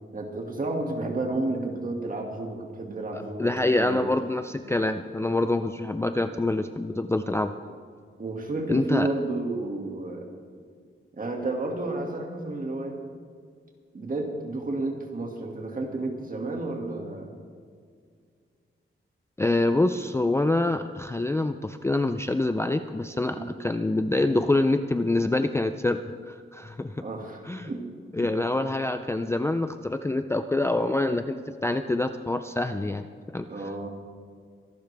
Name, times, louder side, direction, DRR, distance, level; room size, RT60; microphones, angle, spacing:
voice 1, 0.1-3.5 3.8-4.0 6.3-6.4 7.6-7.8 8.2-10.2 11.2-13.0 13.9-17.3 23.3-23.6 27.0-27.8 28.2-28.3 33.5-33.9, right 2 dB, 40° right, 1 dB, 2.1 m, -31 dB
voice 2, 3.4-7.5 8.7-9.1 19.4-27.0 27.5-27.7 28.1-33.1 33.3-33.5, left 2 dB, 10° left, 8 dB, 0.4 m, -26 dB
24.0 x 12.0 x 3.4 m, 2.1 s
wide cardioid pair, 150°, 21 cm